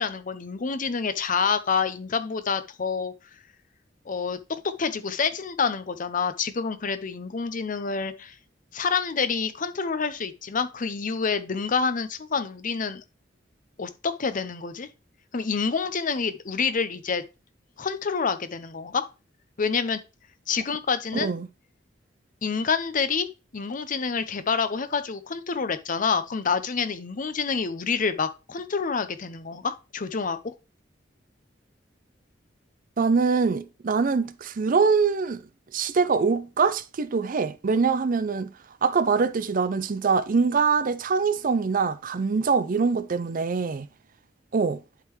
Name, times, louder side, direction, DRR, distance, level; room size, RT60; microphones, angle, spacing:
voice 1, 0.0-3.1 4.1-8.3 8.7-13.0 13.8-14.9 15.3-17.2 17.8-19.1 19.6-20.0 20.5-21.3 22.4-23.3 23.5-30.5, left 5 dB, 45° left, 0.7 m, -27 dB
voice 2, 21.1-21.5 33.0-35.4 35.7-38.5 38.8-43.9 44.5-44.8, right 5 dB, 45° right, 0.5 m, -23 dB
11.0 x 3.7 x 3.2 m
head